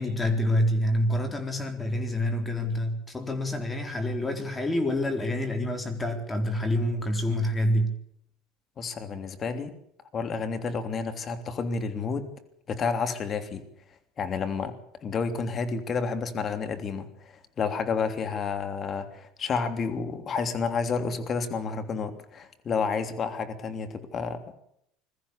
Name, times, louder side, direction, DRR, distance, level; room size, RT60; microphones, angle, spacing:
voice 1, 0.0-8.0, left 1 dB, 15° left, 5 dB, 4.2 m, -27 dB
voice 2, 8.8-9.7 10.1-12.3 12.7-13.6 14.2-14.7 15.0-24.4, left 5 dB, 40° left, 8 dB, 3.2 m, -30 dB
22.0 x 14.5 x 8.5 m, 0.73 s
hypercardioid pair, 80°, 0 cm